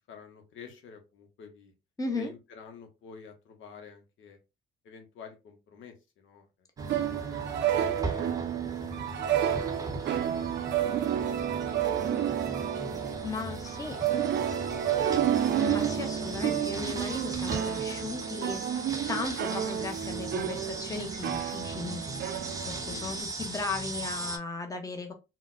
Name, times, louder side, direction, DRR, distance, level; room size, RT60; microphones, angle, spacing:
voice 1, 0.1-1.7 2.1-4.4 4.8-6.7 7.0-7.5 7.9-8.3 8.5-10.9 11.5-13.3 14.1-15.5 22.8-23.2, left 6 dB, 75° left, 0.8 m, -51 dB
voice 2, 2.0-2.3 13.2-14.0 15.6-25.1, left 3 dB, 15° left, 0.7 m, -36 dB
sound 1, 6.8-24.4, right 2 dB, 15° right, 0.7 m, -39 dB
sound 2, 6.8-23.2, right 10 dB, 65° right, 0.4 m, -30 dB
3.8 x 2.1 x 2.4 m
cardioid pair, 90°, 20 cm